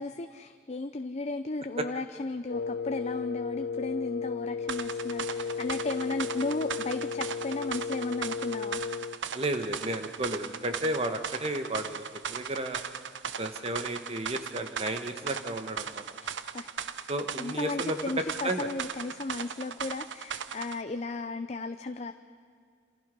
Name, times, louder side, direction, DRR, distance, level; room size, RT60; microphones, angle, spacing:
voice 1, 0.0-8.8 16.2-22.1, left 3 dB, 40° left, 8 dB, 0.7 m, -35 dB
Wind instrument woodwind instrument, 2.5-9.2, left 5 dB, 70° left, 0.7 m, -34 dB
sound 1, 4.7-20.8, right 7 dB, 80° right, 0.8 m, -38 dB
voice 2, 9.3-12.8 13.4-16.0 17.1-18.0 18.4-18.7, right 1 dB, 35° right, 6 dB, 1.6 m, -33 dB
27.5 x 27.5 x 5.4 m, 2.3 s
head